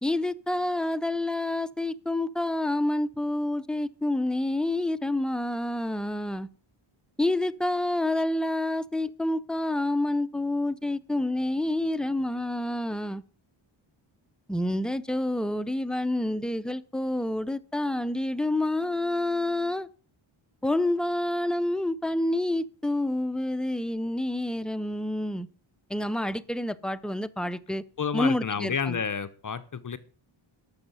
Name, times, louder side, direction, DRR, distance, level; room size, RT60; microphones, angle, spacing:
voice 1, 0.0-6.5 7.2-13.2 14.5-19.9 20.6-25.5 25.9-27.8 28.1-29.0, left 1 dB, ahead, 0.6 m, -28 dB
voice 2, 28.0-30.0, left 6 dB, 40° left, 0.9 m, -30 dB
12.0 x 6.6 x 7.7 m
cardioid pair, 85°, 49 cm